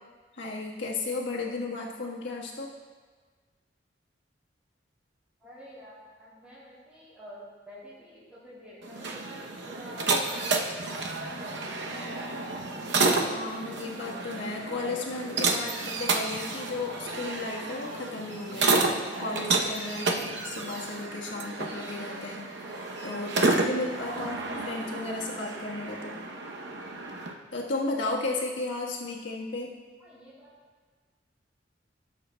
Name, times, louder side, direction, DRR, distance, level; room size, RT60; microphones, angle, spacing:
voice 1, 0.3-2.7 13.3-26.2 27.5-29.7, left 2 dB, 80° left, -3 dB, 1.4 m, -34 dB
voice 2, 5.4-12.7 30.0-30.5, equal, 5° right, -13 dB, 2.7 m, -49 dB
sound 1, 8.8-27.3, right 3 dB, 70° right, 0.8 m, -30 dB
15.5 x 7.4 x 2.3 m, 1.5 s
head